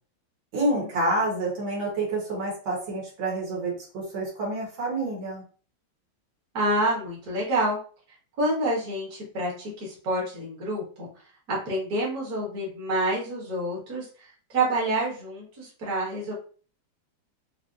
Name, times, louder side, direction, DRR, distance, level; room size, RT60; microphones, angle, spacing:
voice 1, 0.5-5.4, right 2 dB, 75° right, -3 dB, 2.1 m, -28 dB
voice 2, 6.5-7.8 8.4-11.1 11.5-16.3, right 1 dB, 50° right, -4 dB, 1.8 m, -28 dB
5.4 x 2.1 x 2.6 m, 0.39 s
omnidirectional pair, 2.2 m